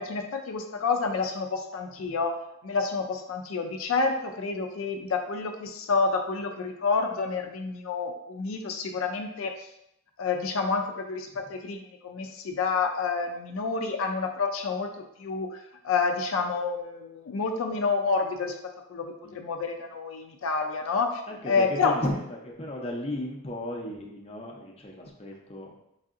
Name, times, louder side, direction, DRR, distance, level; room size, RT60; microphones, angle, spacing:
voice 1, 0.0-2.4 2.6-9.5 10.2-14.9 15.2-15.5 15.8-18.5 18.9-21.2 21.5-21.9, left 4 dB, 85° left, 3 dB, 0.4 m, -28 dB
voice 2, 21.3-25.8, left 1 dB, 30° left, -1 dB, 0.5 m, -35 dB
4.7 x 2.6 x 2.4 m, 0.80 s
head